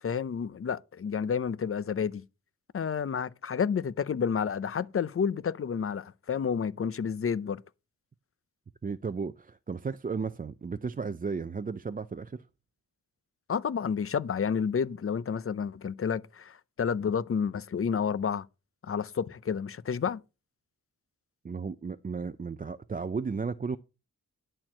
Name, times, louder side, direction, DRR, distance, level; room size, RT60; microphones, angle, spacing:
voice 1, 0.0-2.2 2.7-7.6 13.5-18.5 18.8-20.2, left 6 dB, 40° left, 0.6 m, -30 dB
voice 2, 8.8-12.4 21.4-23.8, right 5 dB, 25° right, 0.4 m, -34 dB
11.0 x 4.4 x 7.4 m
wide cardioid pair, 90°, 34 cm